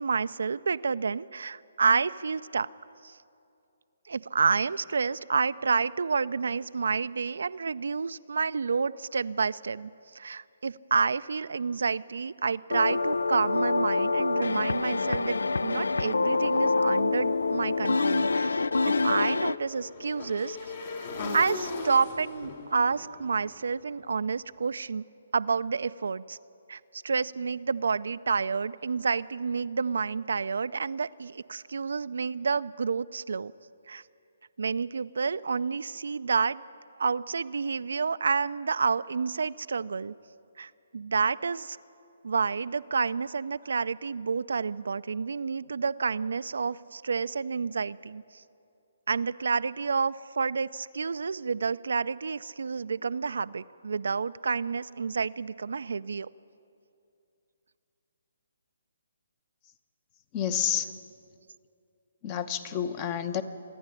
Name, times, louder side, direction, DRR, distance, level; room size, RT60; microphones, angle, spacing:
voice 1, 0.0-2.7 3.0-3.2 4.1-15.4 15.6-18.6 18.9-20.6 21.3-25.0 25.3-26.4 26.7-33.5 33.9-34.0 34.6-36.6 37.0-40.1 40.6-41.8 42.2-48.2 49.1-56.3, right 5 dB, 75° right, 14 dB, 0.4 m, -29 dB
sound 1, 12.7-19.6, left 3 dB, 80° left, 0.4 m, -26 dB
Motorcycle / Engine, 18.3-24.4, left 3 dB, 55° left, 2.9 m, -39 dB
voice 2, 60.3-60.9 62.2-63.4, left 9 dB, 30° left, 12 dB, 1.0 m, -29 dB
26.0 x 10.0 x 9.8 m, 2.6 s
hypercardioid pair, 150°, 0 cm